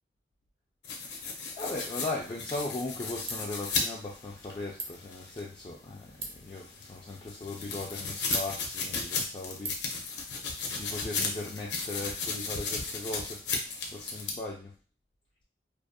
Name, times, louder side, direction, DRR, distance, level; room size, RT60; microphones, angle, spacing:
sound 1, 0.8-5.5 5.9-14.3, left 4 dB, 75° left, 0.5 m, -35 dB
voice 1, 1.1-9.8 10.7-14.7, left 2 dB, 30° left, -3 dB, 0.3 m, -38 dB
Ratchet pawl, 2.1-11.2, right 3 dB, 30° right, 0.5 m, -45 dB
2.5 x 2.0 x 2.5 m, 0.35 s
head